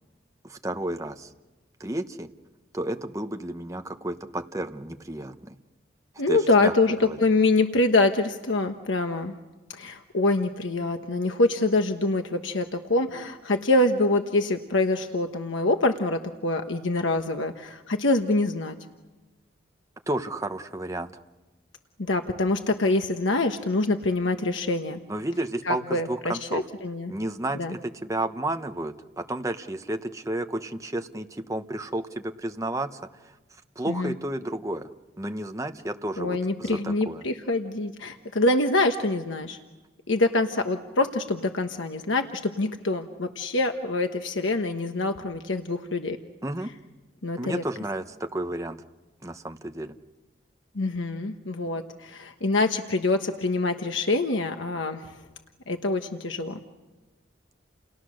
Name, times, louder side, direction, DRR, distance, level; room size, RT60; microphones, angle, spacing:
voice 1, 0.4-1.3 1.8-2.3 2.7-5.5 6.3-6.7 7.0-7.2 20.1-21.1 25.1-26.6 27.1-33.3 33.8-34.9 35.2-37.2 46.4-46.7 47.4-48.8 49.2-50.0, right 1 dB, 15° right, 6 dB, 1.0 m, -32 dB
voice 2, 6.2-9.3 9.7-18.8 22.0-25.0 25.6-27.1 27.5-27.7 33.9-34.1 36.2-39.6 40.1-46.2 47.2-47.6 50.7-55.2 55.7-56.6, left 2 dB, 80° left, 6 dB, 1.2 m, -25 dB
30.0 x 29.5 x 6.5 m, 1.2 s
head